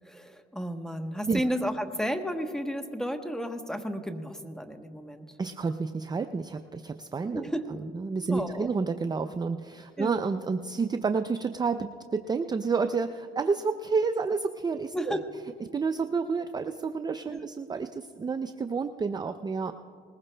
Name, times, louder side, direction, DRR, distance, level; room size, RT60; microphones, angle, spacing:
voice 1, 0.0-5.4 7.3-7.7 8.3-8.7 10.0-10.2 14.9-15.3 17.3-17.5, equal, 5° left, 6 dB, 1.0 m, -33 dB
voice 2, 5.4-7.5 7.9-15.2 15.7-19.7, right 4 dB, 20° right, 9 dB, 0.4 m, -30 dB
20.5 x 20.0 x 2.2 m, 2.3 s
cardioid pair, 90°, 20 cm